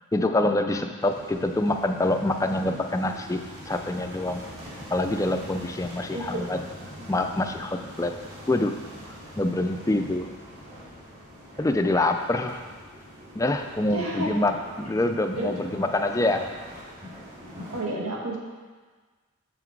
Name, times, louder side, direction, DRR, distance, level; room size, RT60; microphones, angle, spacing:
voice 1, 0.1-4.5 4.9-6.6 7.1-8.2 8.5-10.4 11.6-12.6 13.3-16.4, left 2 dB, 15° left, 6 dB, 0.3 m, -26 dB
sound 1, 1.0-17.8, equal, 35° right, 2.2 m, -43 dB
voice 2, 6.1-6.5 13.9-14.4 15.4-15.7 17.7-18.4, right 1 dB, 75° right, -2 dB, 1.5 m, -31 dB
6.9 x 5.8 x 4.6 m, 1.4 s
head